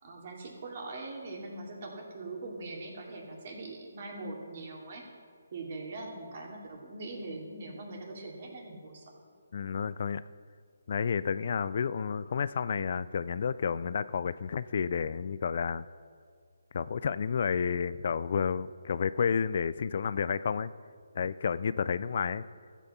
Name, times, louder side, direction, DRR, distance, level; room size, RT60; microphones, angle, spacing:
voice 1, 0.0-5.0 5.5-9.2, right 2 dB, 45° right, 0 dB, 2.7 m, -42 dB
voice 2, 9.5-10.2 10.9-15.9 16.7-20.7 21.2-22.4, left 6 dB, 50° left, 16 dB, 0.3 m, -30 dB
14.0 x 8.3 x 5.6 m, 2.1 s
hypercardioid pair, 155°, 0 cm